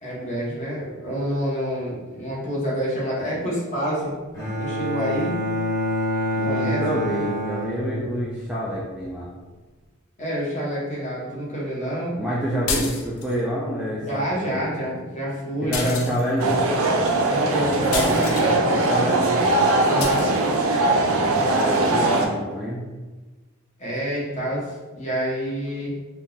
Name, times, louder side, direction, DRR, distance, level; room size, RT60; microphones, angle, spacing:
voice 1, 0.0-4.1 4.6-5.3 6.4-6.8 10.2-12.2 14.1-16.0 16.3-16.4 17.3-18.7 19.9-20.4 23.8-25.9, equal, 35° left, -6 dB, 0.9 m, -28 dB
Bowed string instrument, 4.3-8.4, equal, 15° left, 1.1 m, -27 dB
voice 2, 6.4-9.3 12.2-14.7 15.6-16.6 18.7-19.3 21.2-22.8, equal, 5° right, -7 dB, 0.3 m, -27 dB
sound 1, 12.7-13.4 15.7-16.5 17.9-18.5 20.0-20.3, left 4 dB, 70° left, 0.5 m, -29 dB
sound 2, 16.4-22.3, right 2 dB, 70° right, 0.4 m, -20 dB
3.7 x 2.2 x 2.6 m, 1.2 s
head